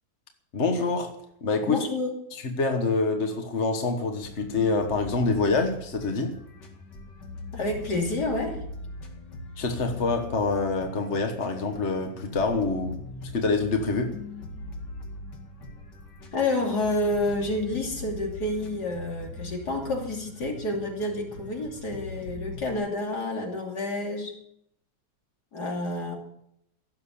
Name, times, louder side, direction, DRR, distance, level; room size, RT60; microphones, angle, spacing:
voice 1, 0.5-1.1 1.4-1.8 2.4-6.4 9.6-14.2, left 3 dB, 45° left, 1.6 m, -26 dB
voice 2, 1.6-2.2 7.5-8.6 16.3-24.3 25.5-26.2, left 2 dB, 70° left, 3.5 m, -29 dB
sound 1, 4.2-22.7, left 2 dB, 90° left, 2.8 m, -41 dB
17.0 x 7.3 x 8.5 m
omnidirectional pair, 1.8 m